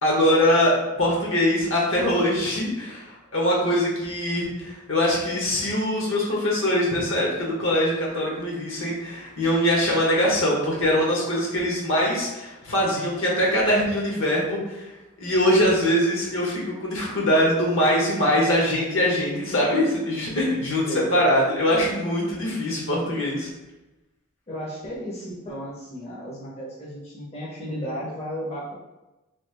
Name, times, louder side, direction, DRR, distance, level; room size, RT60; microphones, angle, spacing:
voice 1, 0.0-14.8 15.2-20.8 21.1-23.5, equal, 60° left, -3 dB, 1.0 m, -22 dB
voice 2, 20.8-21.2 24.5-28.7, equal, 30° left, -7 dB, 0.7 m, -34 dB
3.1 x 2.3 x 3.3 m, 1.0 s
head